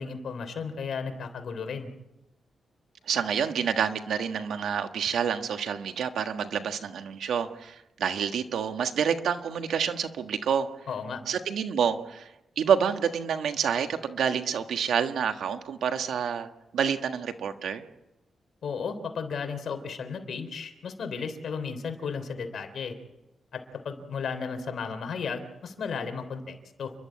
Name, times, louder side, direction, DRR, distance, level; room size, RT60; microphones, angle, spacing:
voice 1, 0.0-1.9 10.9-11.2 18.6-22.9 23.5-26.9, left 5 dB, 70° left, 7 dB, 3.3 m, -34 dB
voice 2, 3.1-10.7 11.3-12.3 12.6-16.5 16.7-17.8, right 7 dB, 85° right, 7 dB, 1.5 m, -28 dB
30.0 x 11.5 x 8.6 m, 0.95 s
cardioid pair, 100°, 0 cm